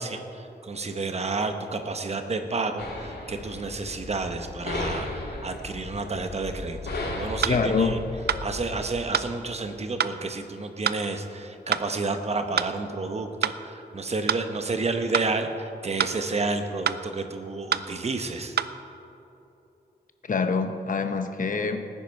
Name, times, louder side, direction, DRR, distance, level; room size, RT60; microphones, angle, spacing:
voice 1, 0.0-8.0 8.4-18.6, right 3 dB, 40° right, 7 dB, 0.9 m, -30 dB
sound 1, 2.8-8.9, left 2 dB, 75° left, 2.4 m, -35 dB
sound 2, 7.4-7.6 8.3-8.5 9.1-9.3 10.0-10.2 10.8-11.0 11.7-11.9 12.6-12.7 13.4-13.6 14.3-14.5 15.1-15.3 16.0-16.2 16.9-17.0 17.7-17.9 18.6-18.7, right 8 dB, 70° right, 0.4 m, -26 dB
voice 2, 7.5-7.9 20.2-21.9, left 5 dB, 50° left, 8 dB, 0.9 m, -25 dB
18.0 x 10.0 x 4.6 m, 2.8 s
wide cardioid pair, 160°, 17 cm